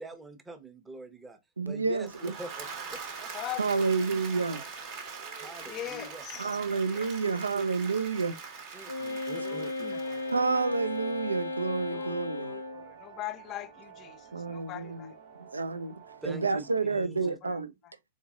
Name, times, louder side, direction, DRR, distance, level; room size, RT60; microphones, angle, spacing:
voice 1, 0.0-1.4 1.6-3.3 5.3-6.2 8.7-10.0 16.2-17.4, right 2 dB, 15° right, 0.8 m, -44 dB
voice 2, 1.6-2.3 3.6-4.6 6.4-8.3 8.7-8.9 10.3-12.5 14.3-15.1 15.5-17.7, right 4 dB, 85° right, 0.4 m, -30 dB
Applause / Crowd, 1.9-11.0, right 5 dB, 50° right, 1.2 m, -43 dB
voice 3, 3.3-3.9 5.6-6.6 6.9-7.1 9.4-10.2 11.9-15.1 17.4-17.6, left 14 dB, 35° left, 0.4 m, -41 dB
Wind instrument woodwind instrument, 8.9-12.9, left 2 dB, 85° left, 0.6 m, -35 dB
sound 1, 10.0-16.7, right 8 dB, 65° right, 0.9 m, -50 dB
3.9 x 3.6 x 2.3 m
figure-of-eight pair, 100°, 0 cm